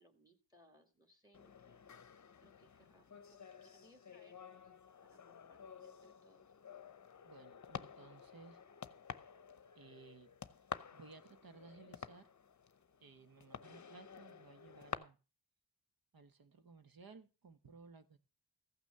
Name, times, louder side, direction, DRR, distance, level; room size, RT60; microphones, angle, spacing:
voice 1, 0.0-4.7 5.0-6.5, equal, 10° right, 6 dB, 1.7 m, -69 dB
sound 1, 1.3-14.9, left 7 dB, 40° left, 0.8 m, -51 dB
voice 2, 7.2-8.6 9.7-10.3 10.9-12.3 13.0-15.2 16.1-18.2, right 4 dB, 55° right, 9 dB, 1.2 m, -58 dB
15.0 x 6.1 x 6.6 m, 0.34 s
wide cardioid pair, 115°, 43 cm